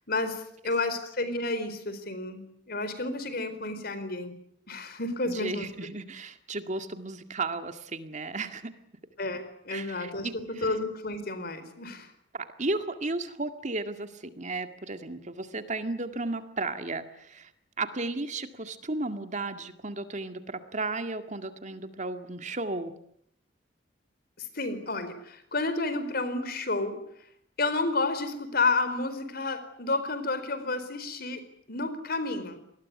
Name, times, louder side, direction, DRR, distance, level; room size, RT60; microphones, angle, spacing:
voice 1, 0.1-4.3 4.7-5.7 9.2-12.1 24.4-27.0 27.6-32.6, left 3 dB, 55° left, 12 dB, 4.4 m, -31 dB
voice 2, 5.2-8.7 9.7-10.7 12.3-17.5 17.8-22.9, right 3 dB, 40° right, 8 dB, 2.0 m, -34 dB
27.0 x 20.5 x 9.6 m, 0.71 s
head